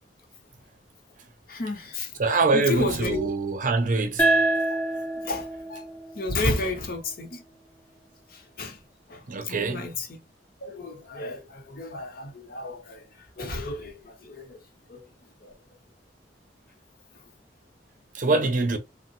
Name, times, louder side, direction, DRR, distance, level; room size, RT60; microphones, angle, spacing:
voice 1, 1.5-2.1 2.5-3.3 5.1-5.8 6.1-7.4 8.3-8.8 9.1-10.2 10.6-13.1 13.4-14.6 14.9-15.0 15.4-15.6, left 2 dB, 55° left, 0.8 m, -32 dB
voice 2, 2.2-4.3 9.3-9.9 18.1-18.8, right 3 dB, 50° right, 0.6 m, -24 dB
sound 1, 4.2-7.4, right 2 dB, 10° left, 0.6 m, -27 dB
3.4 x 2.1 x 2.6 m
head